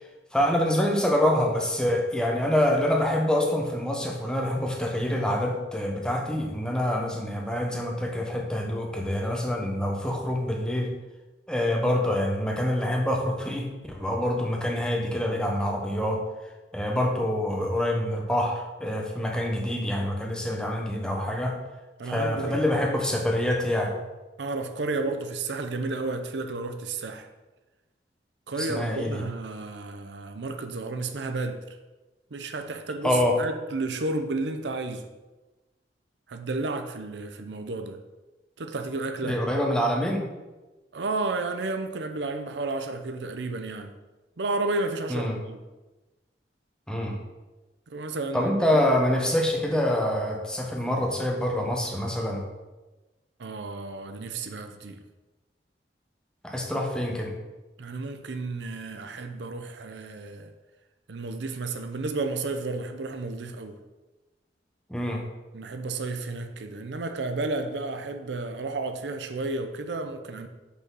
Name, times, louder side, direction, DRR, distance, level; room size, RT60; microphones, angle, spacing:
voice 1, 0.3-10.9 11.5-16.2 16.7-21.6 22.0-24.0 28.6-29.2 33.0-33.4 39.2-40.3 45.1-45.4 46.9-47.2 48.3-52.4 56.4-57.3 64.9-65.2, left 1 dB, 5° left, 0 dB, 0.9 m, -26 dB
voice 2, 22.0-22.6 24.4-27.3 28.5-31.6 32.3-35.0 36.3-38.0 38.6-39.4 40.9-43.9 44.4-45.6 47.9-48.5 53.4-55.0 57.8-60.5 61.1-63.8 65.5-70.5, right 3 dB, 80° right, 7 dB, 0.6 m, -32 dB
5.6 x 4.0 x 6.0 m, 1.1 s
head